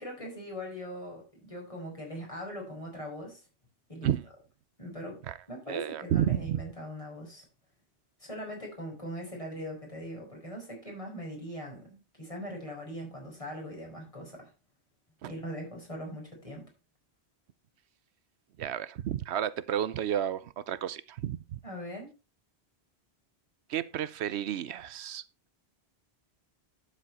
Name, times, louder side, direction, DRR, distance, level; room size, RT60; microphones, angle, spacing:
voice 1, 0.0-3.4 3.9-4.1 4.8-5.2 5.5-7.4 8.2-14.5 15.3-16.7 21.6-22.1, equal, 30° left, 5.4 m, -41 dB
voice 2, 5.7-6.6 15.2-15.3 18.6-21.6 23.7-25.2, right 10 dB, 80° right, 0.9 m, -31 dB
11.5 x 7.5 x 4.2 m
omnidirectional pair, 1.1 m